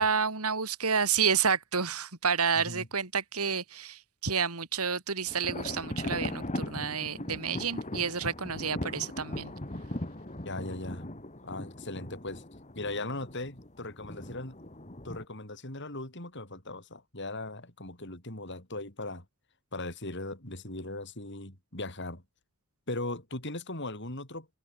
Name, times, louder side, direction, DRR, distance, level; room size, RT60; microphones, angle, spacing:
voice 1, 0.0-9.5, right 6 dB, 80° right, 3.2 m, -30 dB
voice 2, 2.5-2.9 10.4-11.2 11.4-12.4 12.7-14.6 15.0-19.2 19.7-22.2 22.9-24.5, left 2 dB, 55° left, 6.2 m, -38 dB
sound 1, 5.3-15.2, left 1 dB, 30° left, 2.9 m, -39 dB
head